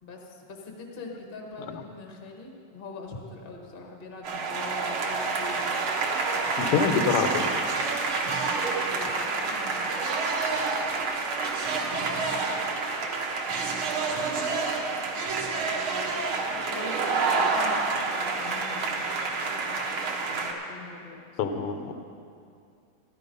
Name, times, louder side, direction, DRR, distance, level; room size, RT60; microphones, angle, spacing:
voice 1, 0.0-7.2 7.7-7.8 8.9-10.3 11.8-12.5 14.0-21.2, left 3 dB, 75° left, 1 dB, 0.5 m, -44 dB
sound 1, 4.2-20.5, right 4 dB, 60° right, 1.4 m, -28 dB
voice 2, 6.6-7.5 21.4-21.9, left 6 dB, 90° left, 7 dB, 1.2 m, -25 dB
15.0 x 11.5 x 5.4 m, 2.4 s
omnidirectional pair, 3.9 m